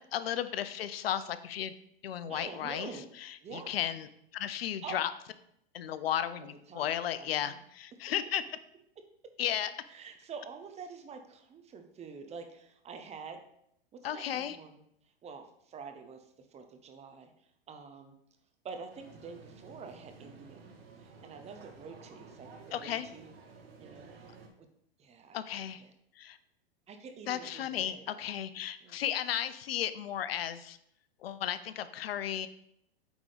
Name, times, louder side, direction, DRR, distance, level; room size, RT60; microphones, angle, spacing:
voice 1, 0.0-1.7 2.0-2.9 3.2-4.1 4.3-5.1 5.7-8.4 9.4-9.7 14.0-14.6 22.7-23.1 25.3-25.8 26.2-26.4 27.3-30.8 31.2-32.5, left 10 dB, 75° left, 13 dB, 0.7 m, -34 dB
voice 2, 2.3-3.1 3.4-3.8 4.8-5.0 6.4-7.6 9.9-13.4 13.9-14.8 15.2-18.1 18.6-20.7 21.0-23.3 23.8-24.2 24.6-24.7 25.0-25.9 26.9-28.2 28.8-29.0 32.3-32.5, right 5 dB, 20° right, 6 dB, 1.0 m, -47 dB
sound 1, 18.9-24.5, right 4 dB, 75° right, 1.9 m, -53 dB
8.8 x 3.7 x 5.1 m, 0.73 s
hypercardioid pair, 120°, 30 cm